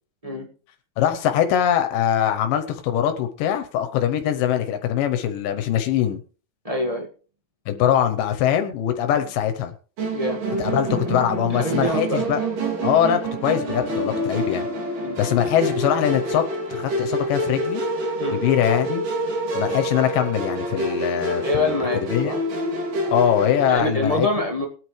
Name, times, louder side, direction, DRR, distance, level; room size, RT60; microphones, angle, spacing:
voice 1, 1.0-6.2 7.7-9.7 10.6-12.4 12.8-14.7 15.2-16.4 16.7-17.8 18.3-19.0 19.5-21.8 22.0-22.3 23.1-24.3, left 10 dB, 85° left, 7 dB, 2.6 m, -22 dB
voice 2, 6.6-7.1 9.1-9.3 10.1-10.4 11.5-12.2 15.0-15.2 18.2-18.4 21.4-22.4 23.7-24.7, left 1 dB, 20° right, 1 dB, 1.1 m, -25 dB
Musical instrument, 10.0-23.8, right 1 dB, 75° right, 4.4 m, -27 dB
22.0 x 9.3 x 3.2 m, 0.39 s
omnidirectional pair, 3.8 m